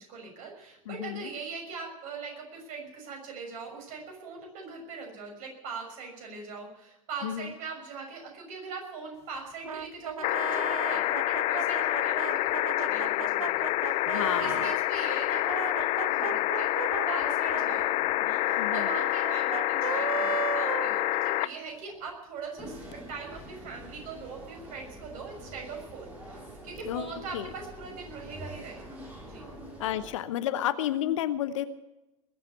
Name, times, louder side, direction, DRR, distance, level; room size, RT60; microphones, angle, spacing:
voice 1, 0.0-22.8 23.1-26.4 26.6-29.4, right 4 dB, 45° right, 2 dB, 6.3 m, -41 dB
voice 2, 0.9-1.3 7.2-7.5 14.1-14.7 18.6-18.9 26.8-27.1 27.3-27.5 29.8-31.6, left 12 dB, 60° left, 13 dB, 1.0 m, -31 dB
Brass instrument, 9.6-14.8 15.3-21.6, right 7 dB, 80° right, 0.6 m, -36 dB
sound 1, 10.2-21.5 22.9-23.0, left 17 dB, 35° left, 0.6 m, -28 dB
sound 2, 22.6-30.2, right 1 dB, 10° right, 6.7 m, -45 dB
21.0 x 7.9 x 8.3 m, 1.0 s
figure-of-eight pair, 90°, 18 cm